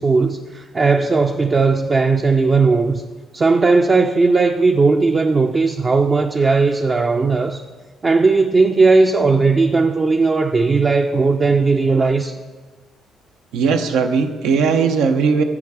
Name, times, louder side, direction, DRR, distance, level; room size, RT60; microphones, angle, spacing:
voice 1, 0.0-3.0 3.3-7.6 8.0-12.4, right 4 dB, 35° right, 5 dB, 0.4 m, -16 dB
voice 2, 13.5-15.4, right 5 dB, 90° right, 6 dB, 0.7 m, -18 dB
7.3 x 7.0 x 4.8 m, 1.4 s
cardioid pair, 90°, 0 cm